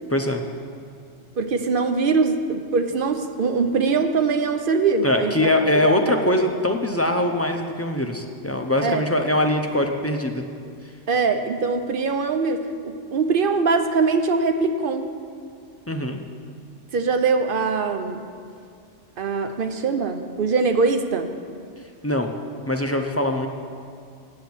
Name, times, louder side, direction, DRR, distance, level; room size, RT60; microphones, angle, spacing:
voice 1, 0.1-0.4 5.0-10.4 15.9-16.2 22.0-22.3 22.7-23.5, left 1 dB, 25° left, 3 dB, 0.3 m, -22 dB
voice 2, 1.4-5.5 5.8-6.1 8.8-9.0 11.1-15.1 16.9-18.2 19.2-21.3, right 4 dB, 55° right, 7 dB, 0.7 m, -22 dB
8.7 x 7.8 x 7.0 m, 2.3 s
omnidirectional pair, 1.2 m